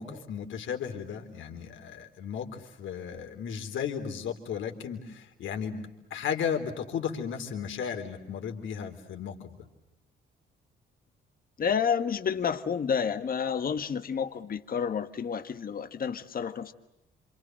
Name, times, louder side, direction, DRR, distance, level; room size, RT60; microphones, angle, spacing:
voice 1, 0.0-9.6, left 7 dB, 75° left, 4 dB, 3.8 m, -35 dB
voice 2, 11.6-16.7, left 7 dB, 45° left, 9 dB, 1.6 m, -30 dB
27.5 x 27.0 x 7.8 m, 0.91 s
cardioid pair, 90°, 20 cm